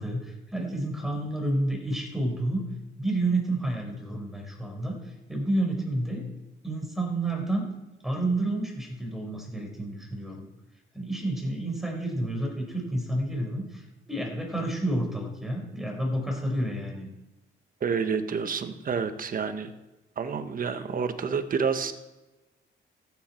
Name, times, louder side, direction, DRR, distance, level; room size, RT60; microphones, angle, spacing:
voice 1, 0.0-2.7 3.0-5.0 5.3-6.2 6.6-7.7 8.0-10.5 10.9-17.1, right 1 dB, ahead, 1 dB, 4.3 m, -30 dB
voice 2, 17.8-19.7 20.2-21.9, right 6 dB, 45° right, 9 dB, 1.2 m, -29 dB
14.0 x 9.1 x 4.5 m, 1.1 s
cardioid pair, 90°, 20 cm